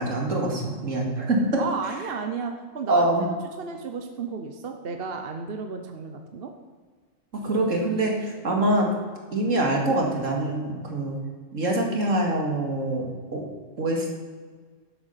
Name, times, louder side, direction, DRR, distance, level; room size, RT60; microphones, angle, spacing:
voice 1, 0.0-1.6 2.9-3.2 7.3-8.9 9.3-11.2 11.5-13.4 13.8-14.1, right 1 dB, 70° right, 0 dB, 2.6 m, -24 dB
voice 2, 1.6-3.3 3.6-6.5, right 5 dB, 50° right, 5 dB, 1.0 m, -33 dB
12.0 x 8.7 x 5.7 m, 1.5 s
omnidirectional pair, 1.4 m